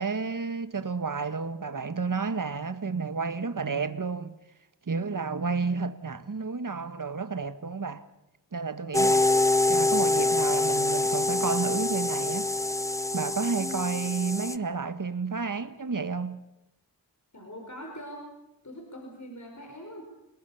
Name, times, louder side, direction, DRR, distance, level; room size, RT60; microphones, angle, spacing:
voice 1, 0.0-4.4 4.9-8.0 8.5-9.3 9.7-12.5 13.1-16.4, right 4 dB, 50° right, 1.5 m, -31 dB
sound 1, 8.9-14.6, left 2 dB, 5° left, 0.9 m, -25 dB
voice 2, 17.3-18.2 18.6-20.0, left 1 dB, 40° left, 5.1 m, -42 dB
29.0 x 19.0 x 7.1 m
wide cardioid pair, 60°, 42 cm